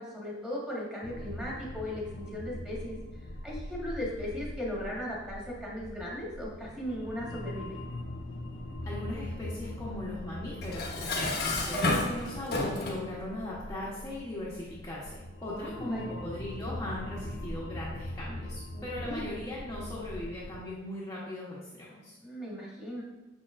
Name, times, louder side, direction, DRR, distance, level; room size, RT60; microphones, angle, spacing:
voice 1, 0.0-7.8 15.6-16.1 18.7-19.3 22.2-23.0, equal, 5° right, -5 dB, 1.6 m, -37 dB
sound 1, 1.0-20.5, left 1 dB, 70° left, 0.6 m, -42 dB
voice 2, 8.8-22.2, left 1 dB, 15° left, -8 dB, 1.1 m, -39 dB
Dishes pots and pans, 10.6-13.1, left 2 dB, 55° left, 1.1 m, -30 dB
6.9 x 6.3 x 2.6 m, 1.1 s
head